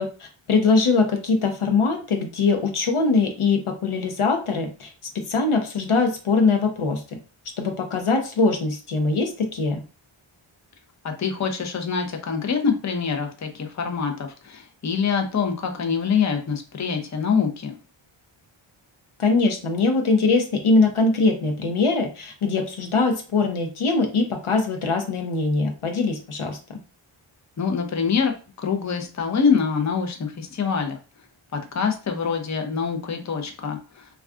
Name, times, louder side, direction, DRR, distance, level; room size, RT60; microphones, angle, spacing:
voice 1, 0.0-7.0 7.6-9.8 19.2-26.8, left 3 dB, 75° left, 4 dB, 0.7 m, -22 dB
voice 2, 11.0-17.8 27.6-28.3 28.6-31.0 31.5-34.1, left 6 dB, 35° left, 4 dB, 0.6 m, -25 dB
2.3 x 2.3 x 3.5 m, 0.34 s
wide cardioid pair, 55°, 50 cm